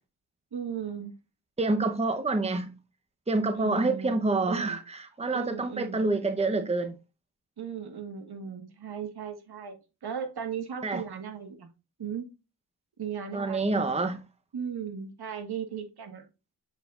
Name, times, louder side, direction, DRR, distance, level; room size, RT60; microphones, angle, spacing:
voice 1, 0.5-1.1 3.6-4.2 4.5-4.8 5.3-6.0 7.6-11.7 12.0-12.3 13.0-13.8 14.5-16.3, right 7 dB, 65° right, 1.7 m, -37 dB
voice 2, 1.6-2.7 3.3-6.9 10.8-11.0 13.3-14.2, right 3 dB, 15° right, 0.9 m, -27 dB
7.7 x 4.9 x 2.5 m
supercardioid pair, 40°, 42 cm